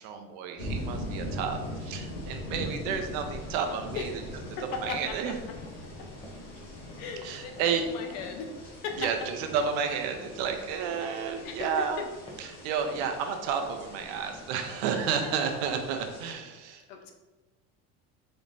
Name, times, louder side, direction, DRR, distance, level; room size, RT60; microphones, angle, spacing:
voice 1, 0.0-4.2 4.8-5.4 7.2-7.8 9.0-12.0 12.4-16.8, right 6 dB, 65° right, 5 dB, 0.6 m, -31 dB
sound 1, 0.6-16.3, left 1 dB, 35° left, 1.4 m, -41 dB
sound 2, 2.8-4.7 4.9-7.3 7.6-7.9 8.2-10.6 10.9-12.0 12.3-12.6 12.9-13.4 13.6-14.6 14.9-15.4 15.6-15.8, left 1 dB, 15° left, 0.3 m, -51 dB
voice 2, 4.6-5.3 6.0-6.1 7.0-8.5 8.8-9.1 11.0-12.1 16.9-17.1, left 6 dB, 90° left, 4 dB, 0.8 m, -37 dB
4.2 x 3.2 x 2.5 m, 1.2 s
cardioid pair, 175°, 36 cm